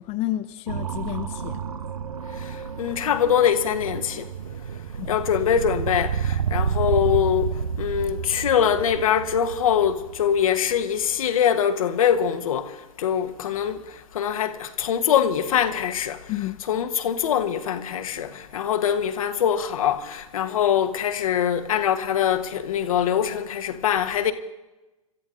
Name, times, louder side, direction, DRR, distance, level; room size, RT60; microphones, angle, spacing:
voice 1, 0.0-1.6 5.0-5.1 16.3-16.6, left 15 dB, 35° left, 0.7 m, -30 dB
sound 1, 0.7-10.8, right 7 dB, 80° right, 0.8 m, -30 dB
voice 2, 2.3-4.3 5.1-16.3 16.7-24.3, left 9 dB, 65° left, 1.4 m, -23 dB
26.5 x 13.5 x 3.9 m
hypercardioid pair, 110°, 19 cm